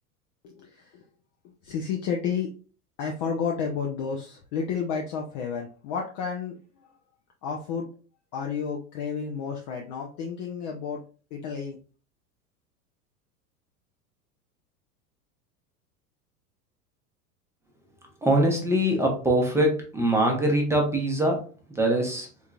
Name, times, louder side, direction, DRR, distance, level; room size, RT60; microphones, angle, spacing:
voice 1, 0.4-0.9 1.6-2.5 3.0-6.5 7.4-7.9 8.3-11.0 11.3-11.8, left 6 dB, 30° left, 1 dB, 0.4 m, -31 dB
voice 2, 18.2-22.3, right 1 dB, 5° right, 0 dB, 0.7 m, -23 dB
3.8 x 2.7 x 2.3 m, 0.37 s
figure-of-eight pair, 85°, 46 cm